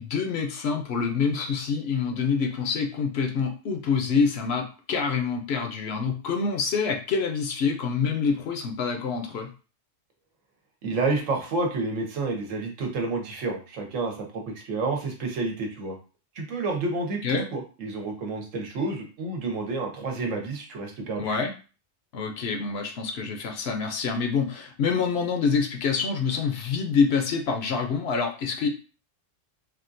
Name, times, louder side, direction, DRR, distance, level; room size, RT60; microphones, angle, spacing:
voice 1, 0.0-9.5 17.2-17.4 21.2-21.5 22.1-28.7, left 5 dB, 65° left, 4 dB, 0.8 m, -26 dB
voice 2, 10.8-16.0 16.3-21.4, right 3 dB, 90° right, 2 dB, 1.2 m, -29 dB
3.5 x 2.4 x 2.5 m, 0.35 s
omnidirectional pair, 1.3 m